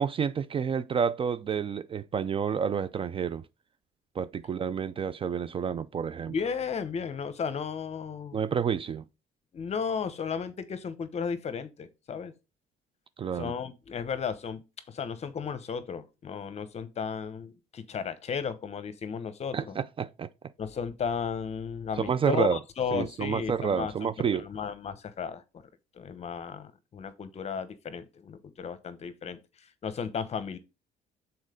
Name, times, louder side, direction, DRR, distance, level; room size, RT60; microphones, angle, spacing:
voice 1, 0.0-3.4 4.1-6.3 8.3-9.0 13.2-13.5 19.5-20.3 22.0-22.6 22.9-24.4, right 7 dB, 30° right, 0.4 m, -29 dB
voice 2, 6.3-8.4 9.5-12.3 13.4-19.7 20.6-24.1 24.4-25.7 25.9-29.4 29.8-30.6, left 6 dB, 40° left, 1.0 m, -34 dB
6.4 x 4.2 x 5.0 m
cardioid pair, 110°, 17 cm